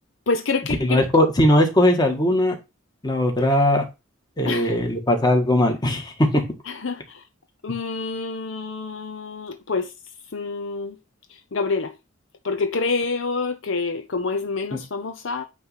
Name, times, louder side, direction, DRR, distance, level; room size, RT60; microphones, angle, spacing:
voice 1, 0.3-1.0 4.5-4.8 6.7-7.2 7.6-9.9 10.3-11.0 11.3-11.9 12.4-15.4, left 4 dB, 65° left, 0.7 m, -27 dB
voice 2, 0.8-2.5 3.0-3.8 4.4-6.4 14.7-14.8, left 1 dB, 20° left, 1.6 m, -19 dB
9.3 x 3.2 x 5.6 m
head